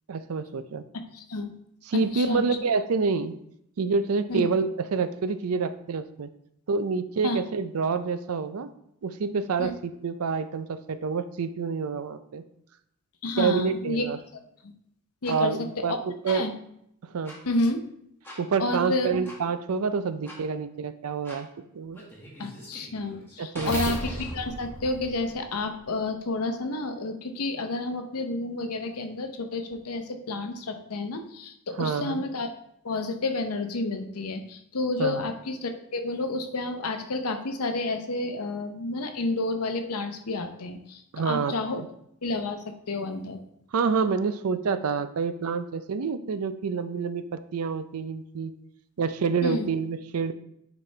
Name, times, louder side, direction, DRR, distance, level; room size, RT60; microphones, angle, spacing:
voice 1, 0.1-0.8 1.9-3.4 3.8-6.3 6.7-8.7 9.0-12.4 13.4-14.2 15.3-16.5 17.0-17.4 18.4-21.5 21.7-22.0 23.4-23.8 31.8-32.2 35.0-35.2 41.1-41.9 43.7-48.5 49.0-50.3, right 5 dB, 70° right, 12 dB, 0.5 m, -27 dB
voice 2, 1.1-1.5 2.1-2.4 4.3-4.5 7.2-7.4 9.6-9.7 13.2-14.1 15.2-16.0 16.3-16.5 17.4-17.8 18.6-19.2 22.4-32.5 32.8-41.8 42.2-43.4 49.4-49.7, left 2 dB, 80° left, 6 dB, 0.8 m, -30 dB
sound 1, 15.2-15.4 16.2-16.4 17.2-17.4 18.2-18.4 19.2-19.4 20.2-20.4 21.2-21.4 21.9-25.8, equal, 10° left, 1.8 m, -37 dB
9.8 x 4.2 x 3.2 m, 0.75 s
head